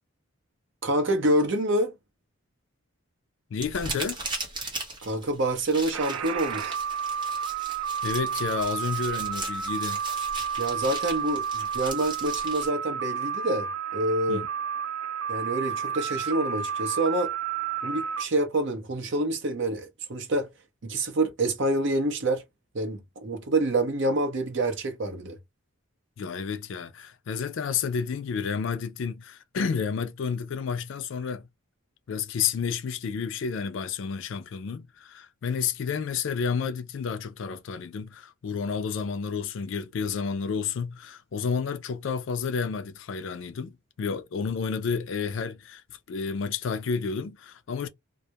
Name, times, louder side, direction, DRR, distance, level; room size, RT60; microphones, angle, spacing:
voice 1, 0.8-1.9 5.0-6.8 10.6-14.4 15.3-17.3 17.8-20.5 20.8-22.4 22.7-25.4, right 1 dB, 55° right, 0.7 m, -27 dB
voice 2, 3.5-4.2 8.0-10.0 14.3-14.5 26.2-31.5 32.1-47.9, left 6 dB, 60° left, 0.3 m, -30 dB
sound 1, 3.6-12.7, right 2 dB, 20° right, 0.8 m, -38 dB
sound 2, 5.9-18.2, right 7 dB, 85° right, 0.3 m, -31 dB
2.2 x 2.0 x 2.7 m
head